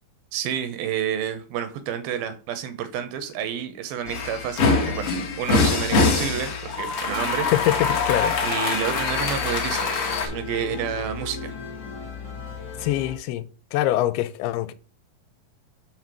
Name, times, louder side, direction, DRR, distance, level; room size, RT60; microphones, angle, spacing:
voice 1, 0.3-5.1 5.4-7.5 8.4-9.9 10.2-11.5, right 9 dB, 75° right, 2.4 m, -29 dB
sound 1, 4.1-10.3, left 4 dB, 65° left, 1.4 m, -24 dB
sound 2, 7.0-13.2, left 5 dB, 40° left, 1.0 m, -36 dB
voice 2, 7.5-8.4 12.8-13.4 13.7-14.7, left 14 dB, 90° left, 2.6 m, -24 dB
6.7 x 4.0 x 5.9 m
omnidirectional pair, 4.5 m